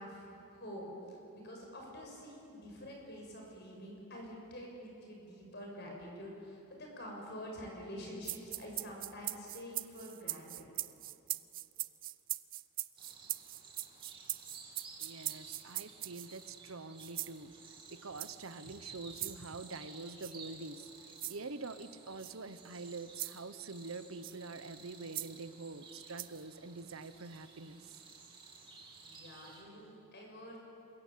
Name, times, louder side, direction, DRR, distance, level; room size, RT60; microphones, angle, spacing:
voice 1, 0.0-10.7 29.0-30.6, equal, 50° left, 0 dB, 7.1 m, -47 dB
sound 1, 8.2-16.4 17.0-17.4 18.2-18.5 19.2-19.3 20.2-20.4 21.2-21.4 22.2-22.3 23.2-23.4 24.2-24.4 25.1-25.3 26.2-26.4, right 16 dB, 40° right, 0.5 m, -40 dB
sound 2, 13.0-29.6, right 4 dB, 20° right, 3.0 m, -54 dB
voice 2, 15.0-17.5 17.9-28.0, right 3 dB, 65° right, 12 dB, 1.0 m, -46 dB
27.5 x 22.5 x 8.6 m, 3.0 s
head